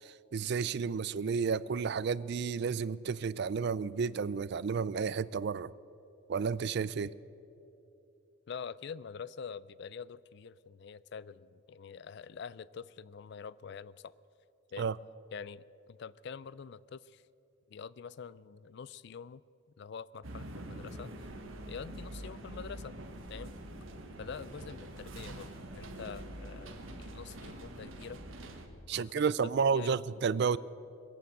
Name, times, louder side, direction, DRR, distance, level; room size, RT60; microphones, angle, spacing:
voice 1, 0.0-5.7 6.3-7.1 14.8-14.9 28.9-30.6, right 5 dB, 50° right, 19 dB, 0.3 m, -31 dB
voice 2, 8.5-14.1 14.7-14.9 15.3-17.2 17.7-19.4 19.8-21.3 21.7-23.0 23.3-23.5 24.2-28.2 28.9-29.3 29.7-29.9, left 6 dB, 55° left, 19 dB, 0.3 m, -45 dB
sound 1, 20.2-28.7, right 1 dB, 70° right, 1.5 m, -45 dB
21.5 x 8.5 x 7.7 m, 2.9 s
head